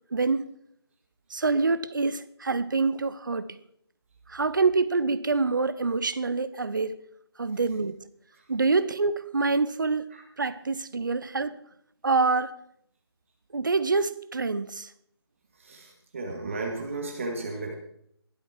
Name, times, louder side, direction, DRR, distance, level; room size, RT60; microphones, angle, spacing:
voice 1, 0.1-0.4 1.3-3.5 4.3-7.0 7.4-8.0 8.5-10.1 10.4-11.6 12.0-12.5 13.5-14.9, right 4 dB, 50° right, 0.8 m, -26 dB
voice 2, 15.6-17.8, right 2 dB, 30° right, 2.0 m, -34 dB
21.5 x 7.9 x 4.7 m
figure-of-eight pair, 160°, 14 cm